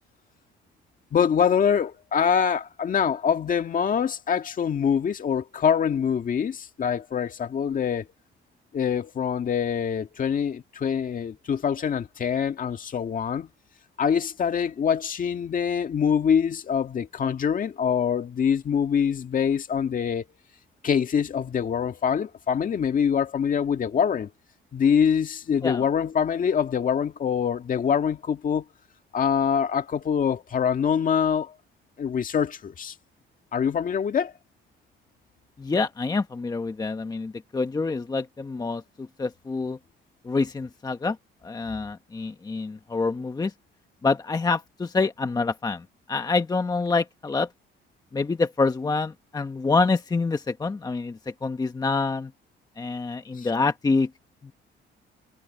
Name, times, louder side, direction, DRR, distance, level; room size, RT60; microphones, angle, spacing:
voice 1, 1.1-8.0 8.7-13.5 14.0-20.2 20.8-24.3 24.7-28.6 29.1-31.5 32.0-32.9 33.5-34.3 53.4-53.5, left 7 dB, 40° left, 1.8 m, -24 dB
voice 2, 35.6-39.8 40.2-41.2 41.4-43.5 44.0-47.5 48.1-52.3 52.8-54.1 54.4-54.5, left 4 dB, 20° left, 1.1 m, -26 dB
cardioid pair, 130°, 21 cm